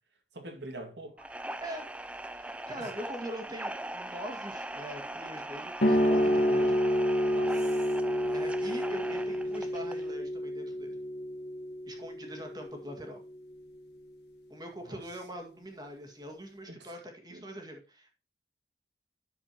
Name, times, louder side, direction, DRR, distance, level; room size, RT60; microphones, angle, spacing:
voice 1, 0.3-1.3 2.8-2.9 7.3-7.8 14.8-15.0 16.7-16.9 17.3-17.4, right 2 dB, 75° right, 2.1 m, -44 dB
sound 1, 1.2-10.1, right 1 dB, 5° right, 0.4 m, -41 dB
voice 2, 2.3-6.8 8.3-11.0 11.9-13.2 14.5-18.1, equal, 20° right, 1.8 m, -43 dB
sound 2, 5.8-13.0, equal, 65° left, 1.5 m, -29 dB
10.5 x 6.9 x 2.9 m
head